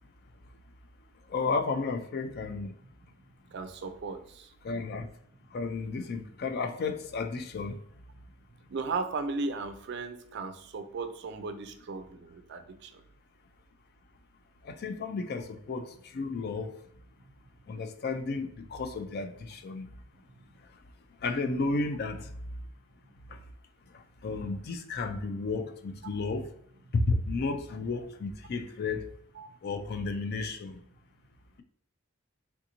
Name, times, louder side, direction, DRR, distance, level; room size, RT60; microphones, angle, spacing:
voice 1, 1.3-2.7 4.6-5.1 5.5-7.8 14.6-15.9 16.1-16.7 17.7-19.9 21.2-22.3 23.9-26.5 26.9-29.0 29.6-30.8, left 3 dB, 50° left, 0.4 m, -32 dB
voice 2, 3.5-4.5 8.7-12.9 29.4-29.5, right 4 dB, 55° right, 0.4 m, -36 dB
3.4 x 2.6 x 2.8 m
head